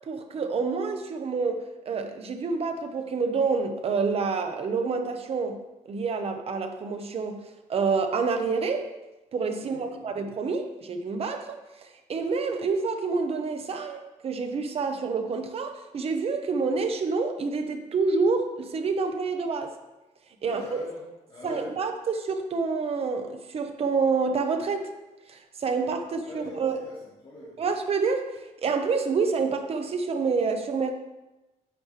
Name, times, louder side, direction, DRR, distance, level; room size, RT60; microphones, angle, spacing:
voice 1, 0.1-5.6 5.8-7.4 7.7-8.9 9.3-19.8 20.4-20.8 21.4-24.9 25.3-26.8 27.6-30.9, right 4 dB, 50° right, 6 dB, 1.1 m, -28 dB
voice 2, 9.6-10.3 20.4-21.7 26.2-27.6, left 1 dB, 40° left, -7 dB, 2.5 m, -43 dB
10.5 x 8.1 x 3.4 m, 1.0 s
cardioid pair, 135°, 13 cm